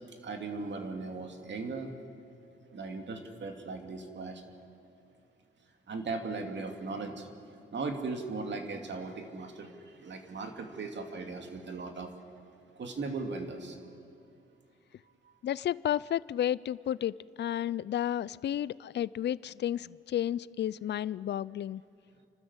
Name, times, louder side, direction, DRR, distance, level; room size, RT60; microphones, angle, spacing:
voice 1, 0.1-1.9 2.7-4.4 5.9-7.3 7.7-12.1 12.8-13.8, right 3 dB, 60° right, 4 dB, 2.5 m, -38 dB
voice 2, 15.4-21.8, left 11 dB, 55° left, 20 dB, 0.4 m, -32 dB
29.0 x 13.0 x 8.1 m, 2.5 s
cardioid pair, 85°, 21 cm